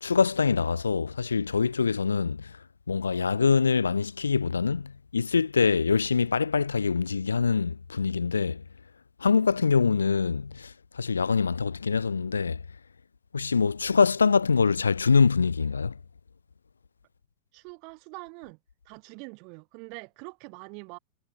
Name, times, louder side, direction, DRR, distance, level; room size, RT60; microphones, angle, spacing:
voice 1, 0.0-2.6 2.9-8.6 9.2-12.6 13.3-16.0, left 5 dB, 75° left, 0.4 m, -24 dB
voice 2, 17.5-18.6 18.8-21.0, right 35 dB, 45° right, 1.5 m, -44 dB
figure-of-eight pair, 90°, 0 cm